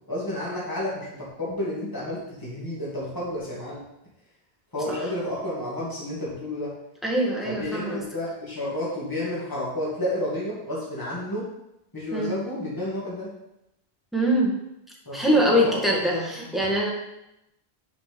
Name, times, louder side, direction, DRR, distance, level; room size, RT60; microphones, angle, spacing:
voice 1, 0.1-3.8 4.7-6.7 7.4-11.5 11.9-13.3 15.1-16.7, left 1 dB, 20° left, -7 dB, 2.3 m, -31 dB
voice 2, 7.0-8.0 12.1-12.3 14.1-14.5 15.1-16.9, equal, ahead, -4 dB, 1.7 m, -23 dB
6.7 x 5.0 x 5.2 m, 0.86 s
omnidirectional pair, 1.0 m